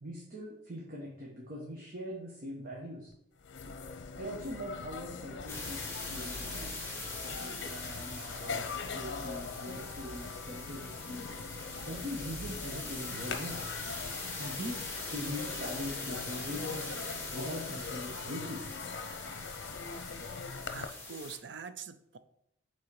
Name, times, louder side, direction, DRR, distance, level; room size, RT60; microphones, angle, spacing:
voice 1, 0.0-3.1 4.2-6.7 7.4-8.7 8.9-11.3 11.9-13.6 14.4-16.9 17.3-18.7, equal, 50° right, -2 dB, 1.2 m, -42 dB
sound 1, 3.1-3.2 3.4-20.9, left 4 dB, 65° left, 0.7 m, -42 dB
sound 2, 5.5-21.4, left 3 dB, 15° left, 1.9 m, -42 dB
voice 2, 20.7-22.2, right 6 dB, 70° right, 12 dB, 0.5 m, -44 dB
7.4 x 4.0 x 4.8 m, 0.77 s
head